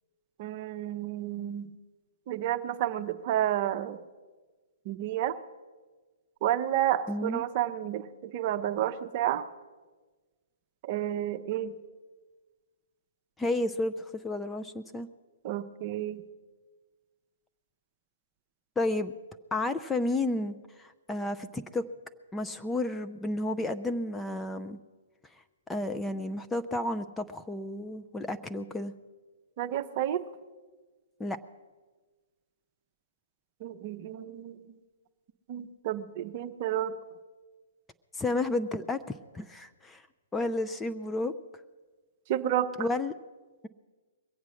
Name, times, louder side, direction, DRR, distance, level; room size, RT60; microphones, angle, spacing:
voice 1, 0.4-1.7 2.3-4.0 4.9-5.3 6.4-9.5 10.8-11.8 15.4-16.2 29.6-30.2 33.6-34.8 35.5-37.0 42.3-42.7, right 12 dB, 40° right, 11 dB, 0.7 m, -30 dB
voice 2, 7.1-7.4 13.4-15.1 18.8-19.1 19.5-21.8 22.3-24.8 25.7-28.9 31.2-31.4 38.2-40.0 40.3-41.3 42.8-43.1, left 2 dB, 10° left, 9 dB, 0.5 m, -31 dB
21.5 x 8.2 x 6.2 m, 1.3 s
figure-of-eight pair, 120°, 0 cm